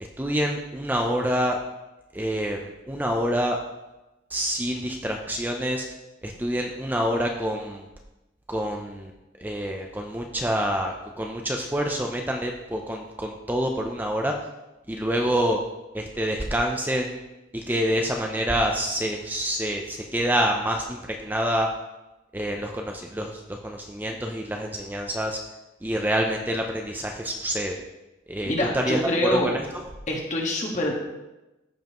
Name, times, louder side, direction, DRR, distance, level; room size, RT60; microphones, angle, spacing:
voice 1, 0.2-1.6 2.1-3.6 4.3-5.8 6.2-7.9 8.5-9.1 9.4-14.3 14.9-15.6 15.9-17.2 17.5-21.7 22.3-25.4 25.8-27.8 28.3-29.0 29.3-29.8, equal, 10° right, 2 dB, 0.5 m, -27 dB
voice 2, 28.5-29.5 30.1-30.9, left 1 dB, 40° left, -1 dB, 1.6 m, -25 dB
14.5 x 5.4 x 3.0 m, 1.0 s
head